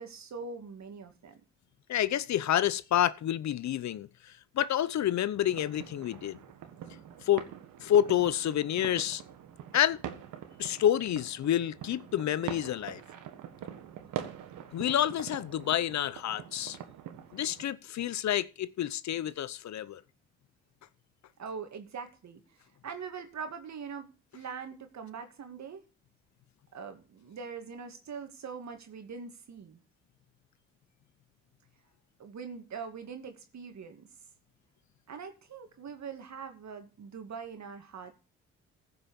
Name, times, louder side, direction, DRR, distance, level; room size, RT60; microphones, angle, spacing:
voice 1, 0.0-1.4 21.4-22.4 22.8-25.8 26.7-29.8 32.2-34.1 35.1-38.1, right 5 dB, 60° right, 2.3 m, -42 dB
voice 2, 1.9-6.4 7.2-7.5 7.8-9.2 9.7-10.0 10.6-13.0 14.7-16.8 17.3-20.0, left 11 dB, 60° left, 0.7 m, -28 dB
sound 1, 5.5-17.6, right 9 dB, 75° right, 1.6 m, -44 dB
15.0 x 5.5 x 7.1 m
supercardioid pair, 50°, 31 cm